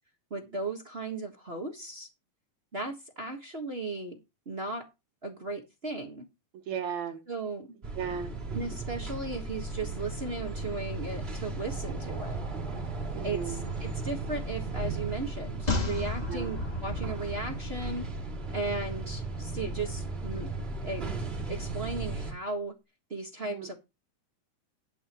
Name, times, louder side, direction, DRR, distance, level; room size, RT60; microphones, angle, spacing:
voice 1, 0.3-2.1 2.7-4.2 4.4-4.8 5.2-6.2 7.3-7.7 8.5-12.4 13.2-18.0 18.5-20.5 20.8-21.0 21.5-22.7 23.1-23.7, right 3 dB, 35° right, 0.9 m, -36 dB
voice 2, 6.5-7.2 8.0-8.3 13.1-13.7 16.3-16.5 23.4-23.7, right 7 dB, 70° right, 2.4 m, -36 dB
sound 1, 7.8-22.3, right 3 dB, 20° right, 2.7 m, -36 dB
sound 2, 15.7-19.1 19.4-19.5, left 3 dB, 20° left, 1.4 m, -34 dB
12.0 x 10.5 x 3.0 m
omnidirectional pair, 3.6 m